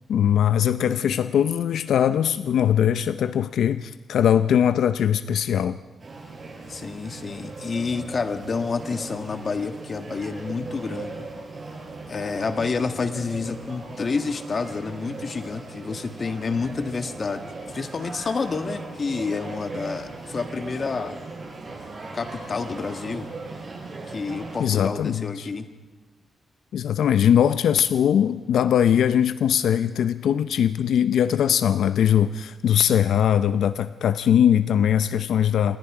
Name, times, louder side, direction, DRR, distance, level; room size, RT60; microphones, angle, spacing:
voice 1, 0.1-5.8 24.6-25.5 26.7-35.8, left 9 dB, 90° left, 12 dB, 0.6 m, -21 dB
sound 1, 6.0-24.6, right 3 dB, 35° right, 5.7 m, -38 dB
voice 2, 6.7-11.3 12.1-21.2 22.1-23.3 24.1-25.7, left 4 dB, 40° left, 8 dB, 1.5 m, -29 dB
27.5 x 20.5 x 4.9 m, 1.2 s
wide cardioid pair, 145°, 0 cm